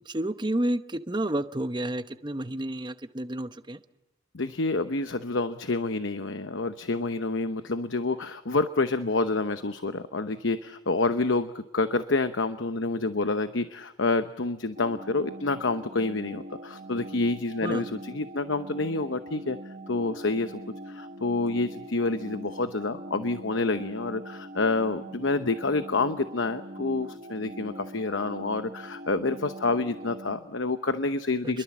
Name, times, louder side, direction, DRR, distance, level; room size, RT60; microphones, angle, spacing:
voice 1, 0.1-3.8 17.6-17.8 31.4-31.6, right 1 dB, 20° right, 11 dB, 0.9 m, -30 dB
voice 2, 4.3-19.6 19.9-20.6 20.9-31.6, left 3 dB, 65° left, 10 dB, 0.9 m, -28 dB
sound 1, 14.8-30.4, right 1 dB, 45° right, 1.3 m, -42 dB
30.0 x 22.5 x 7.3 m, 0.92 s
head